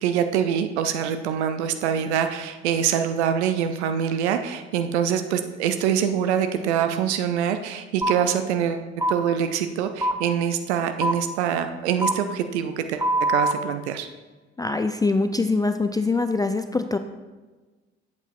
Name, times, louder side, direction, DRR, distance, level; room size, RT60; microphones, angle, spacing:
voice 1, 0.0-13.0 13.3-14.1, right 8 dB, 80° right, 8 dB, 0.5 m, -24 dB
sound 1, 8.0-8.1 9.0-9.2 10.0-10.1 11.0-11.1 12.0-12.1 13.0-13.5, right 1 dB, 10° right, 1.1 m, -22 dB
voice 2, 14.6-17.0, left 3 dB, 10° left, 8 dB, 0.4 m, -23 dB
11.5 x 8.1 x 2.5 m, 1.3 s
figure-of-eight pair, 50°, 33 cm